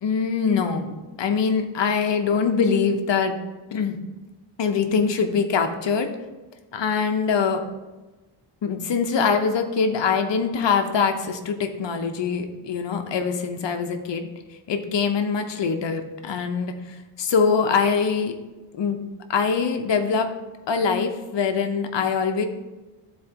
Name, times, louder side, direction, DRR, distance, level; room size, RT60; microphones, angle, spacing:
voice 1, 0.0-3.4 3.7-4.0 4.6-6.1 6.7-7.6 8.6-14.3 14.7-16.7 17.2-18.3 18.7-19.0 19.3-20.3 20.7-22.4, left 5 dB, 60° left, 6 dB, 1.0 m, -23 dB
12.5 x 4.3 x 3.0 m, 1.2 s
cardioid pair, 110°, 49 cm